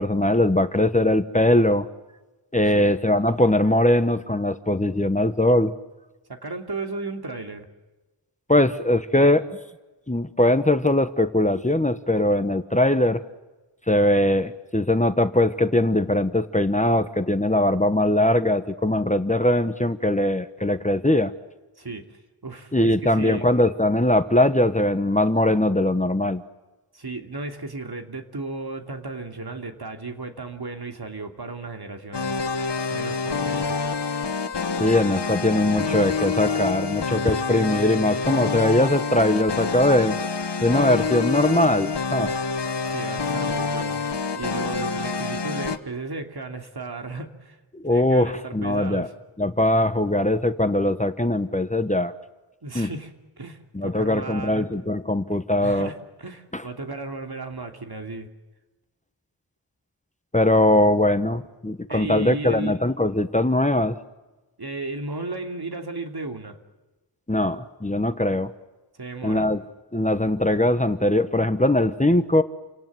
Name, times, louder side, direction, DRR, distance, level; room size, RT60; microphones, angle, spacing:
voice 1, 0.0-1.9 2.5-5.7 8.5-9.4 10.1-13.2 13.9-21.3 22.7-26.4 34.8-40.2 40.6-42.3 47.7-49.1 49.4-52.1 52.7-52.9 53.7-55.9 56.5-56.6 60.3-64.0 67.3-68.5 69.2-69.6 69.9-72.4, left 1 dB, 15° left, 10 dB, 1.2 m, -21 dB
voice 2, 6.3-7.7 21.8-23.5 26.9-32.4 32.9-33.8 42.9-47.6 47.9-49.1 52.6-53.1 53.4-54.7 55.6-58.3 61.9-62.8 64.6-66.6 68.9-69.5, right 3 dB, 60° right, 5 dB, 2.9 m, -34 dB
sound 1, 32.1-45.8, left 4 dB, 65° left, 1.6 m, -27 dB
29.0 x 18.0 x 9.4 m, 1.1 s
wide cardioid pair, 50°, 44 cm